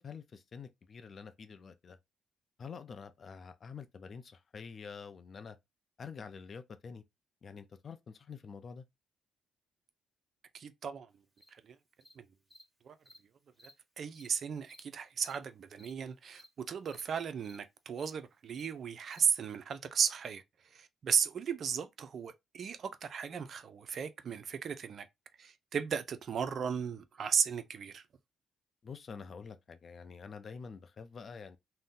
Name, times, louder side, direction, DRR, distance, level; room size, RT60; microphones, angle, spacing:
voice 1, 0.0-2.0 2.6-5.6 6.0-7.0 7.4-8.8 28.8-31.6, left 5 dB, 45° left, 0.5 m, -47 dB
voice 2, 10.5-11.1 11.6-11.8 12.2-12.3 12.8-13.0 14.0-20.4 20.7-25.1 25.4-28.0, right 7 dB, 55° right, 0.4 m, -35 dB
Cricket, 11.4-11.5 12.0-12.1 12.5-12.6 13.1-13.2 13.5-13.7 14.1-14.3 14.7-14.8 15.2-15.4 15.7-15.9 16.3-16.5 16.8-17.0 17.4-17.6 17.9-18.1 18.5-18.7 19.1-19.2, left 1 dB, 5° right, 1.1 m, -56 dB
2.6 x 2.1 x 3.7 m
cardioid pair, 90°, 0 cm